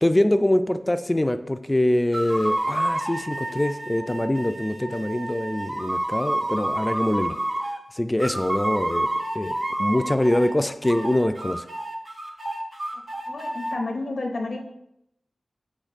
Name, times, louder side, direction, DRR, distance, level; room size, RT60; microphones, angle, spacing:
voice 1, 0.0-7.4 7.9-9.1 9.3-11.6, left 1 dB, 20° left, 9 dB, 0.3 m, -24 dB
sound 1, 2.1-7.8 8.2-10.5 10.8-13.7, right 1 dB, 45° right, 0.6 m, -29 dB
voice 2, 13.3-14.6, left 2 dB, 80° left, 1 dB, 0.7 m, -30 dB
6.4 x 3.2 x 2.4 m, 0.81 s
cardioid pair, 45°, 0 cm